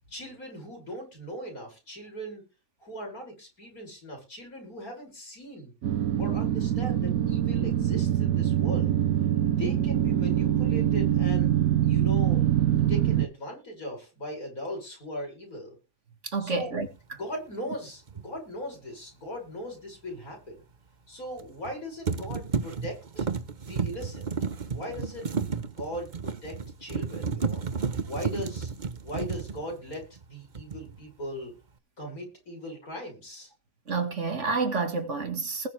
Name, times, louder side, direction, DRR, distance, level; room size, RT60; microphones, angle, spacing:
voice 1, 0.1-2.4 2.8-5.7 6.2-8.9 9.5-12.4 12.9-15.8 16.4-16.7 17.2-20.6 21.1-23.3 23.6-24.3 24.7-25.3 25.8-27.6 28.1-28.7 29.0-31.5 32.0-33.5, equal, 80° left, 7.2 m, -39 dB
sound 1, 5.8-13.3, right 11 dB, 75° right, 1.3 m, -24 dB
voice 2, 16.3-17.2 33.9-35.7, right 4 dB, 55° right, 2.2 m, -29 dB
sound 2, 18.1-18.3 21.4-21.7 22.1-30.2 30.5-31.0, right 5 dB, 35° right, 1.0 m, -32 dB
20.0 x 7.3 x 3.4 m
omnidirectional pair, 1.5 m